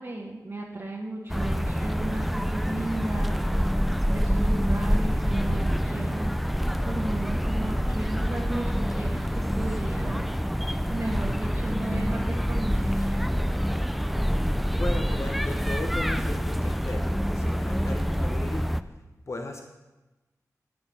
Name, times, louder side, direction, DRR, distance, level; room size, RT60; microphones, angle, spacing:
voice 1, 0.0-3.7 4.1-6.3 6.8-10.2 10.8-13.2, right 2 dB, 50° right, -4 dB, 1.4 m, -35 dB
sound 1, 1.3-18.8, equal, ahead, 0.5 m, -26 dB
voice 2, 14.7-18.7 19.3-19.6, left 2 dB, 50° left, 3 dB, 1.1 m, -36 dB
9.1 x 8.0 x 5.6 m, 1.1 s
cardioid pair, 50°, 6 cm